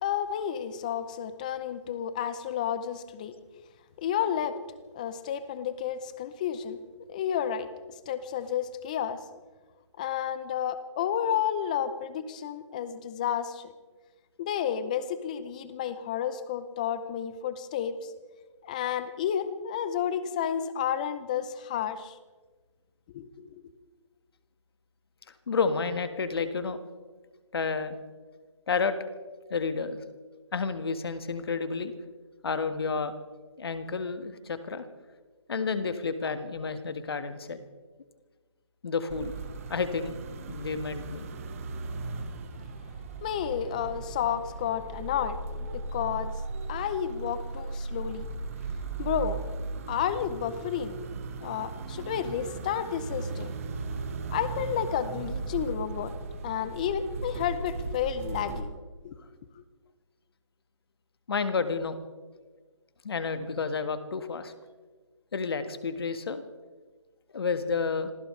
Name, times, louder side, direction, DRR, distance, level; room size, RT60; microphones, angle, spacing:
voice 1, 0.0-3.3 4.0-4.6 4.9-6.8 7.1-7.7 8.1-9.2 10.0-13.7 14.4-18.1 18.6-22.2 23.1-23.6 43.2-46.3 46.7-48.3 49.0-49.5 49.9-50.9 51.4-53.5 54.3-56.1 56.4-58.7 59.0-59.2, left 9 dB, 15° left, 13 dB, 0.6 m, -31 dB
voice 2, 25.5-26.8 27.5-28.0 28.7-29.0 29.5-30.0 30.5-31.9 32.4-33.1 33.6-34.9 35.5-37.6 38.8-39.3 39.7-40.1 40.5-41.3 61.3-62.0 63.0-64.5 65.3-66.4 67.3-68.1, left 5 dB, 50° left, 10 dB, 1.6 m, -30 dB
sound 1, 39.1-58.6, right 3 dB, 30° right, 1.4 m, -37 dB
26.5 x 16.0 x 3.2 m, 1.4 s
hypercardioid pair, 165°, 16 cm